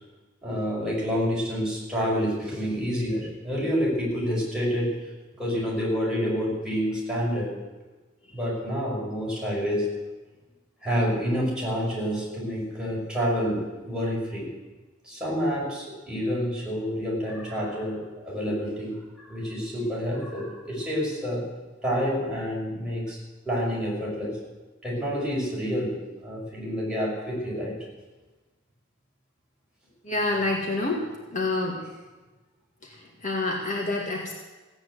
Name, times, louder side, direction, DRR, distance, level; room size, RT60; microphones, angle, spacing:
voice 1, 0.4-5.1 5.4-7.5 8.3-9.9 10.8-14.5 15.0-21.5 21.8-23.2 23.4-24.4 24.8-27.8, equal, 5° right, -6 dB, 5.9 m, -28 dB
voice 2, 30.0-31.9 32.8-34.3, left 2 dB, 40° left, -1 dB, 1.8 m, -28 dB
16.0 x 9.0 x 8.0 m, 1.2 s
head